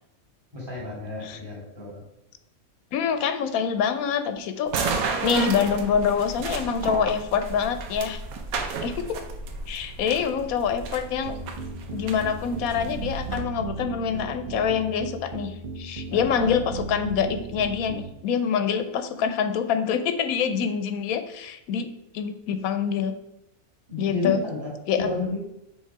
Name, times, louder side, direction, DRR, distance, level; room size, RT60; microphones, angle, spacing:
voice 1, 0.5-2.0 16.1-16.5 23.9-25.4, left 2 dB, 20° right, -5 dB, 2.3 m, -32 dB
voice 2, 2.9-4.7 5.2-8.2 8.8-9.2 9.7-11.4 11.9-23.1 24.0-24.4 24.9-25.1, left 7 dB, 85° left, 9 dB, 1.0 m, -26 dB
sound 1, 4.7-13.4, right 4 dB, 90° right, 1.2 m, -33 dB
sound 2, 11.3-18.1, right 4 dB, 45° right, 0.7 m, -36 dB
6.4 x 3.6 x 4.6 m, 0.82 s
omnidirectional pair, 1.5 m